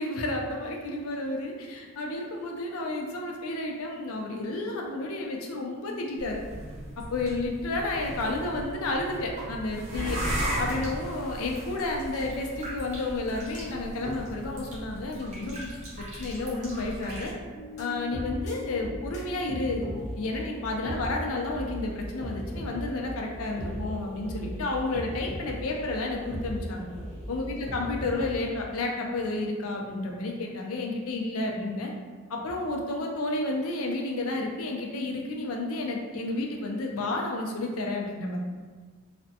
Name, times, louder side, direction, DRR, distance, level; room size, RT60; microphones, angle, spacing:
voice 1, 0.0-6.4 7.0-10.2 10.6-15.7 16.0-17.3 17.8-19.9 20.2-26.9 27.3-31.9 32.3-38.4, left 2 dB, 80° left, 0 dB, 0.5 m, -31 dB
sound 1, 6.2-17.3, right 1 dB, 35° right, 0.6 m, -36 dB
sound 2, 17.5-28.5, left 1 dB, 35° left, 0.7 m, -38 dB
3.3 x 2.1 x 2.7 m, 1.5 s
head